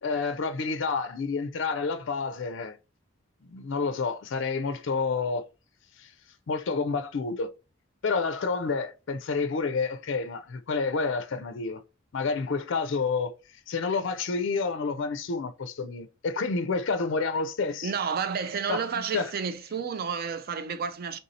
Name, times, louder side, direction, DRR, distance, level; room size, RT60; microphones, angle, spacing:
voice 1, 0.0-2.8 3.5-5.4 6.0-6.1 6.5-7.5 8.0-11.8 12.1-13.3 13.7-17.9 18.7-18.9 19.1-19.3, left 4 dB, 60° left, 0.4 m, -29 dB
voice 2, 17.8-21.2, right 6 dB, 45° right, 0.4 m, -31 dB
3.6 x 2.7 x 4.0 m
head